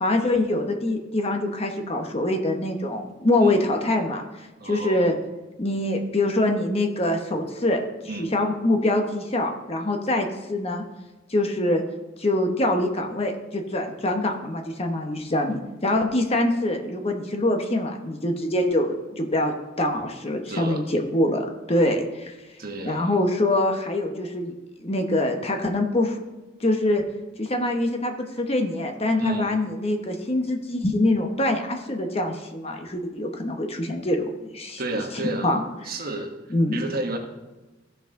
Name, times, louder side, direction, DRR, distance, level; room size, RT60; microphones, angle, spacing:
voice 1, 0.0-4.2 4.6-5.2 5.6-7.8 8.1-10.8 11.3-11.8 12.2-22.3 22.8-24.5 24.8-26.2 26.6-27.0 27.4-34.3 34.5-35.0 35.4-35.6 36.5-36.8, left 1 dB, 35° left, 4 dB, 0.9 m, -24 dB
voice 2, 4.6-5.2 8.1-8.4 20.5-20.8 22.6-23.1 29.2-29.5 34.8-35.5 35.8-36.3 36.7-37.2, right 2 dB, 50° right, 3 dB, 1.2 m, -30 dB
15.0 x 5.7 x 3.7 m, 1.1 s
head